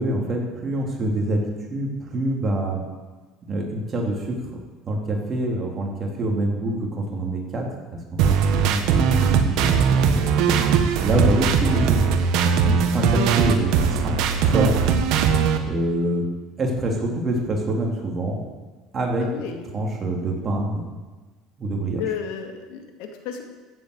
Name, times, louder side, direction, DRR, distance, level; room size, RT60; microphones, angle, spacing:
voice 1, 0.0-2.8 3.5-4.5 4.9-8.3 8.7-10.4 11.0-12.0 12.6-14.7 15.7-16.3 16.6-18.4 18.9-19.3 19.7-20.9 21.6-22.0, right 1 dB, 30° right, 0 dB, 3.3 m, -25 dB
sound 1, 8.2-15.6, right 6 dB, 65° right, 1.4 m, -19 dB
voice 2, 19.2-19.6 22.0-23.4, left 8 dB, 75° left, 4 dB, 2.2 m, -32 dB
15.0 x 8.1 x 8.1 m, 1.3 s
cardioid pair, 130°, 0 cm